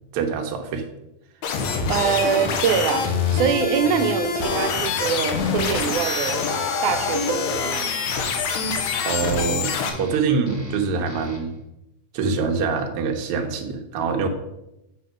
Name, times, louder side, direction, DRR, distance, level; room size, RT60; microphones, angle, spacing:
voice 1, 0.1-0.8 9.0-11.5 12.1-14.3, right 5 dB, 65° right, 3 dB, 1.6 m, -24 dB
sound 1, 1.4-9.9, left 5 dB, 75° left, 2.2 m, -25 dB
voice 2, 1.9-6.4 6.8-8.0, right 8 dB, 85° right, 9 dB, 2.1 m, -24 dB
sound 2, 2.1-11.6, equal, 45° left, 0.5 m, -38 dB
8.0 x 4.2 x 6.3 m, 0.88 s
omnidirectional pair, 3.4 m